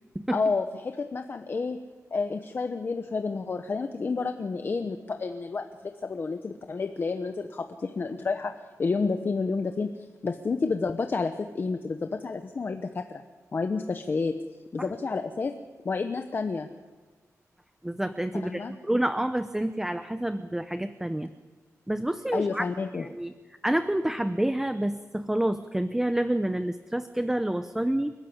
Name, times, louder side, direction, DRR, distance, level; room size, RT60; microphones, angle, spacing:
voice 1, 0.3-1.8 2.1-8.5 8.8-9.9 10.2-13.2 13.5-14.3 14.7-15.5 15.8-16.7 18.4-18.7 22.3-23.1, left 4 dB, 40° left, 7 dB, 1.0 m, -30 dB
voice 2, 17.8-21.3 21.9-22.7 23.0-23.3 23.6-28.1, right 1 dB, 5° right, 10 dB, 0.7 m, -28 dB
30.0 x 13.5 x 8.5 m, 1.4 s
wide cardioid pair, 150°, 6 cm